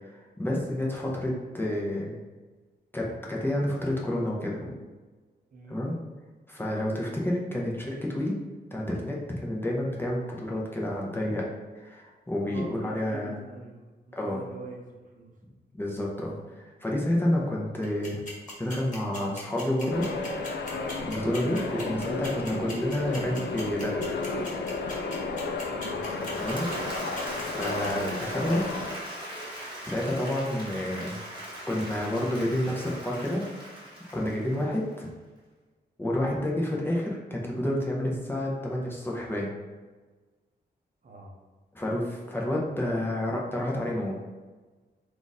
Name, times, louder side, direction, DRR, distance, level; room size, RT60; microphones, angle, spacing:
voice 1, 0.0-2.2 2.9-4.6 5.7-5.9 6.5-8.4 8.7-11.5 11.7-13.4 14.1-14.4 15.7-18.2 18.6-20.0 20.4-20.6 21.1-24.0 26.4-26.7 27.4-28.7 29.9-31.2 31.7-33.4 34.1-35.1 36.0-39.5 41.7-44.2, left 1 dB, 10° left, -3 dB, 0.6 m, -29 dB
voice 2, 5.5-5.9 12.4-15.3 25.7-26.4 27.2-27.5 41.0-41.4, right 2 dB, 50° right, 0 dB, 0.6 m, -45 dB
sound 1, 17.8-27.9, left 1 dB, 45° left, 1.2 m, -40 dB
sound 2, 19.9-29.0, left 3 dB, 80° left, 0.5 m, -33 dB
Applause / Crowd, 25.9-35.0, equal, 30° right, 1.1 m, -40 dB
3.8 x 2.5 x 4.0 m, 1.3 s
wide cardioid pair, 155°, 18 cm